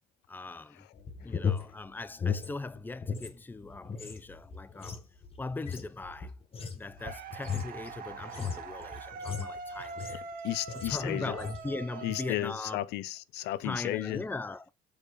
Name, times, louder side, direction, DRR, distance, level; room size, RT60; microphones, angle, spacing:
voice 1, 0.3-0.9 1.2-5.0 5.4-6.3 6.7-10.3 10.7-12.8 13.6-14.7, left 3 dB, 10° left, 0.6 m, -39 dB
sound 1, 0.9-3.3 3.6-10.3 10.7-11.0 11.3-11.7, left 6 dB, 35° left, 1.9 m, -36 dB
sound 2, 7.0-13.1, right 4 dB, 55° right, 1.6 m, -43 dB
voice 2, 10.4-11.4 12.0-14.2, left 16 dB, 85° left, 0.7 m, -33 dB
7.2 x 4.9 x 6.6 m
cardioid pair, 110°, 17 cm